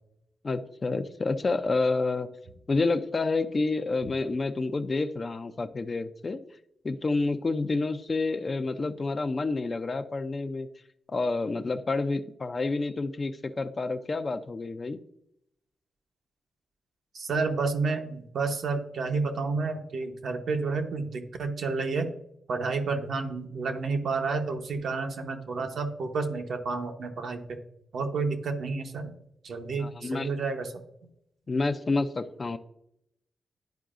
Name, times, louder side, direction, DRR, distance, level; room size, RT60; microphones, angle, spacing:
voice 1, 0.4-2.3 2.7-6.4 6.8-10.7 11.1-15.0 29.8-30.3 31.5-32.6, left 3 dB, 40° left, 8 dB, 0.4 m, -29 dB
voice 2, 17.1-22.1 22.5-27.6 27.9-29.1 29.4-30.7, right 4 dB, 75° right, 4 dB, 0.9 m, -30 dB
10.5 x 4.6 x 2.5 m, 0.77 s
cardioid pair, 60°, 0 cm